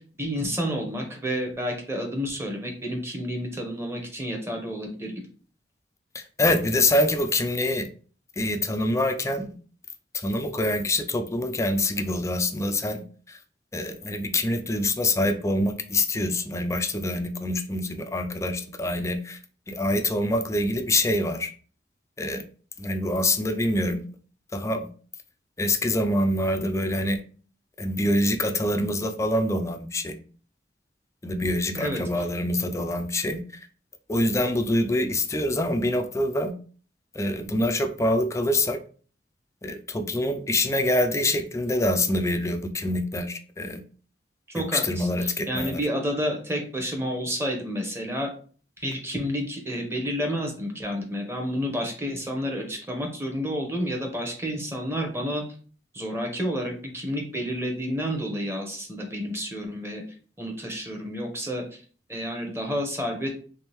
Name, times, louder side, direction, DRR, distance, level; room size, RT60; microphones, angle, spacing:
voice 1, 0.0-5.1 31.8-32.2 44.5-48.3 48.8-55.4 55.9-60.0 60.4-61.8 62.1-63.3, equal, 15° right, 2 dB, 0.9 m, -30 dB
voice 2, 6.1-7.9 8.4-9.5 10.1-13.0 13.3-13.4 13.7-19.4 19.7-21.5 22.2-22.4 22.8-24.0 24.5-24.9 25.6-27.2 27.8-30.2 31.2-33.4 34.1-36.5 37.2-38.8 39.6-43.8 44.6-45.9, left 1 dB, 15° left, 7 dB, 0.3 m, -25 dB
3.5 x 3.4 x 2.9 m, 0.42 s
head